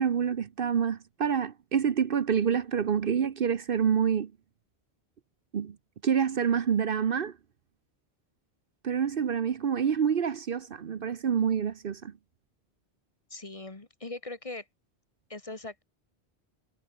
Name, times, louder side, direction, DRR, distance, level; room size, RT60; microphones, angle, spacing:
voice 1, 0.0-4.3 5.5-5.8 6.0-7.3 8.8-12.1, right 7 dB, 60° right, 1.0 m, -27 dB
voice 2, 13.3-14.7 15.3-15.8, left 2 dB, 30° left, 1.6 m, -40 dB
omnidirectional pair, 1.1 m